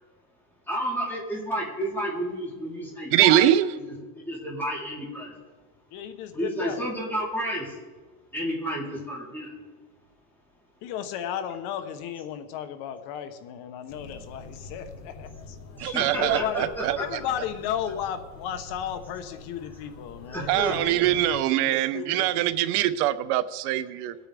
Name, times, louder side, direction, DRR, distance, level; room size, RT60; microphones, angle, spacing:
voice 1, 0.7-5.3 6.3-7.8 8.3-9.5 15.7-16.6 20.3-21.3 21.6-21.7, equal, 5° left, 3.6 m, -31 dB
voice 2, 3.1-3.7 15.8-17.0 20.5-24.1, right 13 dB, 80° right, 0.8 m, -23 dB
voice 3, 5.9-6.8 10.8-15.6 16.2-16.7 17.0-21.2 21.7-22.9, left 9 dB, 60° left, 1.1 m, -34 dB
sound 1, 13.9-21.4, left 3 dB, 75° left, 3.9 m, -45 dB
23.0 x 8.9 x 3.4 m
cardioid pair, 160°, 44 cm